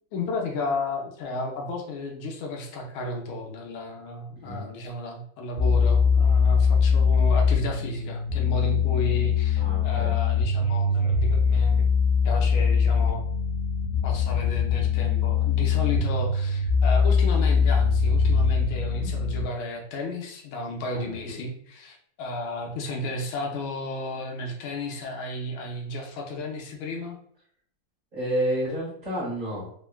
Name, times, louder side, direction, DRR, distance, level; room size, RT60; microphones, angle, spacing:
voice 1, 0.1-11.8 12.2-13.2 14.0-27.2, left 1 dB, 85° left, 1 dB, 1.5 m, -33 dB
sound 1, 5.6-19.4, left 5 dB, 80° right, 1.3 m, -22 dB
voice 2, 9.6-10.1 11.0-11.1 18.9-19.1 20.9-21.4 28.1-29.7, equal, 30° right, -8 dB, 1.1 m, -30 dB
3.6 x 2.2 x 2.2 m, 0.63 s
omnidirectional pair, 2.2 m